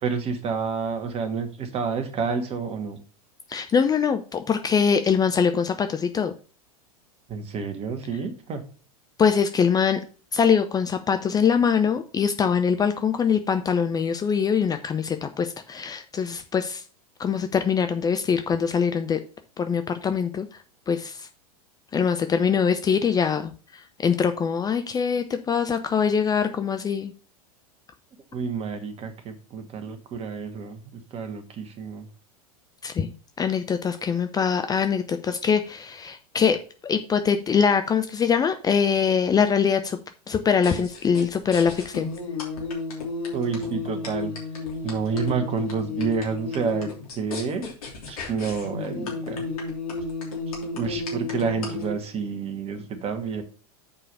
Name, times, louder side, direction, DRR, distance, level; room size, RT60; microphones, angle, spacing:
voice 1, 0.0-3.0 7.3-8.6 28.3-30.8 31.1-32.1 43.3-44.3 44.8-47.7 48.1-49.5 50.7-53.4, right 5 dB, 30° right, 8 dB, 1.7 m, -29 dB
voice 2, 3.5-6.3 9.2-10.0 10.3-16.8 17.2-19.2 19.6-20.5 20.9-21.3 21.9-27.1 32.8-33.1 33.4-36.6 36.8-40.0 40.3-42.1, left 6 dB, 20° left, 8 dB, 0.6 m, -23 dB
sound 1, 40.6-51.9, left 3 dB, 70° left, 3.1 m, -32 dB
7.1 x 5.0 x 5.5 m, 0.37 s
figure-of-eight pair, 90°, 19 cm